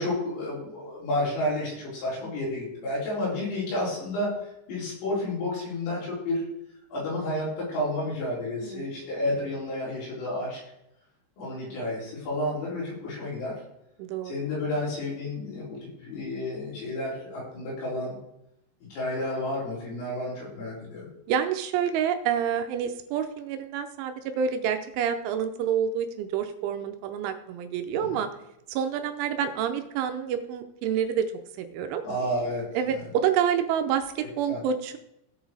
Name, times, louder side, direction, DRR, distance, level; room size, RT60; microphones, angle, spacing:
voice 1, 0.0-6.4 6.9-10.6 11.4-13.5 14.2-18.2 18.9-21.1 32.0-33.0 34.5-34.6, left 1 dB, 75° left, -7 dB, 7.2 m, -31 dB
voice 2, 14.0-14.3 21.3-28.3 28.7-31.3 31.6-32.1 32.7-35.0, right 8 dB, 80° right, 7 dB, 3.0 m, -28 dB
16.5 x 6.1 x 4.8 m, 0.82 s
omnidirectional pair, 5.8 m